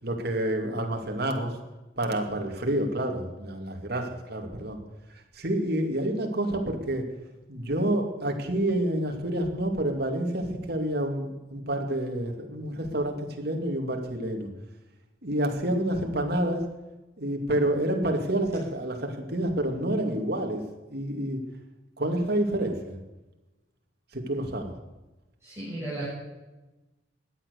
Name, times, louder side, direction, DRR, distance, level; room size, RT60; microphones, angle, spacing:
voice 1, 0.0-1.5 2.0-4.8 5.4-7.0 7.5-14.5 15.2-16.7 17.2-20.6 20.9-21.4 22.0-23.0 24.1-24.7, right 1 dB, 55° right, 3 dB, 2.6 m, -28 dB
voice 2, 25.4-26.0, right 1 dB, 15° right, -10 dB, 7.0 m, -34 dB
16.5 x 11.0 x 6.6 m, 1.1 s
head